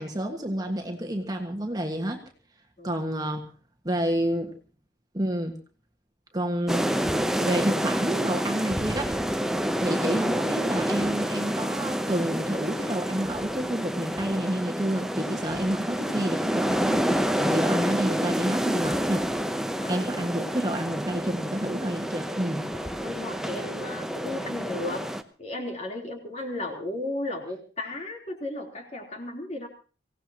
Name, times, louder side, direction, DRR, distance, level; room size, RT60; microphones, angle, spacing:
voice 1, 0.0-2.2 2.8-3.5 3.8-4.5 5.1-5.6 6.3-6.9 7.4-9.1 9.8-19.3 19.9-22.6, right 1 dB, 20° right, 2 dB, 1.7 m, -29 dB
sound 1, 6.7-25.2, equal, 5° right, 0.8 m, -28 dB
voice 2, 19.8-20.3 22.7-25.1 25.4-29.7, left 2 dB, 35° left, 1 dB, 3.6 m, -35 dB
24.5 x 17.0 x 3.0 m, 0.37 s
head